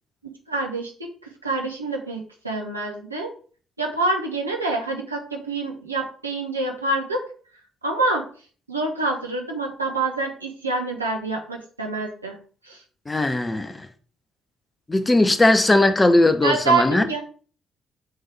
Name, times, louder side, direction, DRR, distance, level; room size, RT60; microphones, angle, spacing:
voice 1, 0.5-0.9 1.4-3.3 3.8-7.2 7.8-8.2 8.7-12.3 12.7-12.8 16.4-17.2, right 2 dB, 90° right, 0 dB, 0.9 m, -26 dB
voice 2, 13.1-13.7 14.9-17.0, left 2 dB, 20° left, 8 dB, 0.9 m, -18 dB
7.5 x 3.7 x 3.3 m, 0.42 s
figure-of-eight pair, 45°, 0 cm